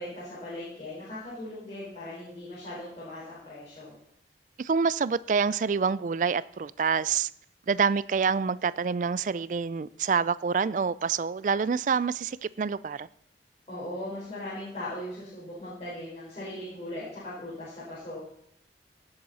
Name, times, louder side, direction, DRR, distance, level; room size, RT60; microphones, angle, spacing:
voice 1, 0.0-3.9 13.7-18.2, left 1 dB, 40° left, 4.6 m, -39 dB
voice 2, 4.6-7.3 7.7-13.1, right 5 dB, 45° right, 0.3 m, -27 dB
18.0 x 7.9 x 4.1 m
head